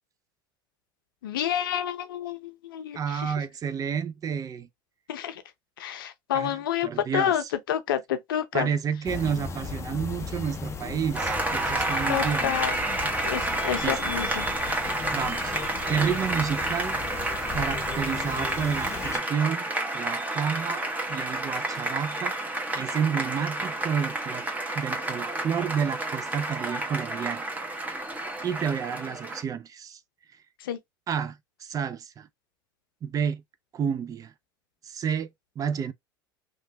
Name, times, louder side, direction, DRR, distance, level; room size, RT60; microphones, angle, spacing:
voice 1, 1.2-3.3 5.1-5.4 5.8-8.7 12.1-12.8 13.2-14.5 30.6-30.8, left 10 dB, 85° left, 0.6 m, -29 dB
voice 2, 3.0-4.7 6.3-7.5 8.5-12.6 13.8-14.0 15.1-15.6 15.9-17.0 17.5-19.6 19.9-20.8 21.1-22.3 22.7-24.5 24.7-27.4 28.4-30.0 31.1-32.3 33.0-33.4 33.7-34.3 34.8-35.3 35.6-35.9, right 7 dB, 30° right, 0.4 m, -30 dB
sound 1, 9.0-19.2, left 5 dB, 25° left, 0.5 m, -37 dB
Applause, 11.1-29.4, right 2 dB, 15° right, 1.1 m, -30 dB
3.0 x 2.3 x 2.7 m
hypercardioid pair, 85°, 11 cm